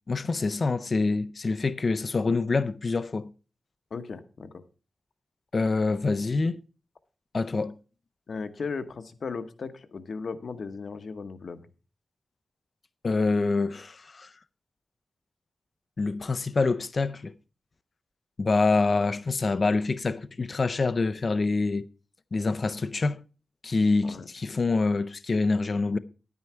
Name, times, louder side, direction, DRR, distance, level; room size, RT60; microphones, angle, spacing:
voice 1, 0.1-3.3 5.5-6.6 7.3-7.7 13.0-14.3 16.0-17.3 18.4-21.8 22.3-23.2 23.6-26.0, left 3 dB, 40° left, 0.5 m, -26 dB
voice 2, 3.9-4.6 8.3-11.6 24.0-24.3, left 5 dB, 60° left, 0.9 m, -36 dB
10.5 x 9.5 x 4.5 m
wide cardioid pair, 160°, 0 cm